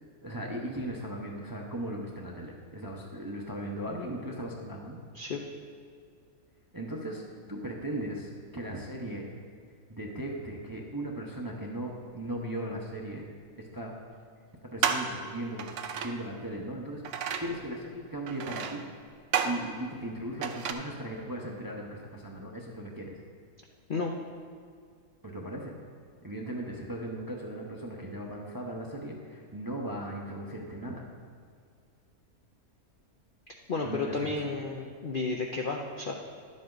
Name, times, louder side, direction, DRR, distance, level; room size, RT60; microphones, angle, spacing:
voice 1, 0.2-5.0 6.7-7.2 7.5-9.3 9.9-13.2 13.6-13.9 14.6-15.7 16.0-18.8 19.4-23.2 25.2-25.7 26.2-31.0 33.8-34.5, right 1 dB, 20° right, -1 dB, 0.5 m, -37 dB
sound 1, 12.7-12.8 13.8-13.9 14.8-15.2 15.6-16.2 17.0-17.6 18.3-18.9 19.3-19.7 20.4-20.7, right 7 dB, 65° right, 0.8 m, -31 dB
voice 2, 33.7-36.1, left 3 dB, 55° left, 1 dB, 0.5 m, -32 dB
11.0 x 7.5 x 3.9 m, 2.2 s
omnidirectional pair, 1.6 m